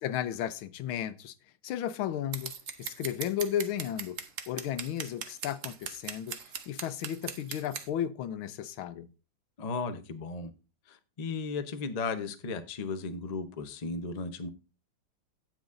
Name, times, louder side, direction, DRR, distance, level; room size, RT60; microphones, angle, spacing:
voice 1, 0.0-1.3 1.6-2.5 2.8-4.2 4.5-6.4 6.7-9.1, left 10 dB, 90° left, 1.6 m, -34 dB
Scissors, 2.3-7.9, right 7 dB, 50° right, 1.0 m, -39 dB
voice 2, 9.6-10.5 10.9-14.5, left 4 dB, 50° left, 0.4 m, -35 dB
17.5 x 6.0 x 2.6 m
omnidirectional pair, 2.2 m